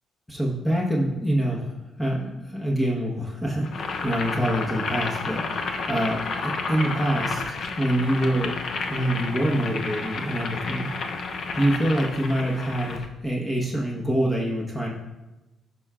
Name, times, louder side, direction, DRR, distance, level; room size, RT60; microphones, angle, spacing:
voice 1, 0.3-1.7 2.0-5.6 5.9-8.5 8.9-10.9 11.5-14.9, right 1 dB, 10° left, -3 dB, 1.2 m, -25 dB
Boiling, 3.6-13.1, left 4 dB, 60° left, 0.7 m, -31 dB
10.5 x 5.6 x 2.4 m, 1.1 s
cardioid pair, 90°, 0 cm